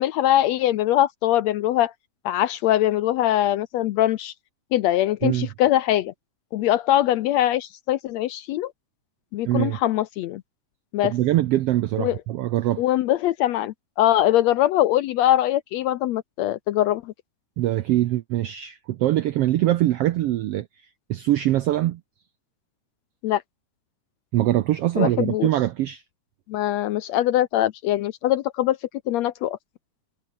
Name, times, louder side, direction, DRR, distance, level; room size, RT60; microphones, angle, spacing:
voice 1, 0.0-1.9 2.2-4.3 4.7-6.1 6.5-8.7 9.3-10.4 10.9-11.1 12.0-12.2 12.8-17.1 23.2-23.4 25.0-25.5 26.5-28.8 29.1-29.6, left 13 dB, 75° left, 1.7 m, -22 dB
voice 2, 9.4-9.8 11.0-12.8 17.6-20.7 21.1-22.0 24.3-26.0, right 14 dB, 80° right, 1.4 m, -23 dB
omnidirectional pair, 3.6 m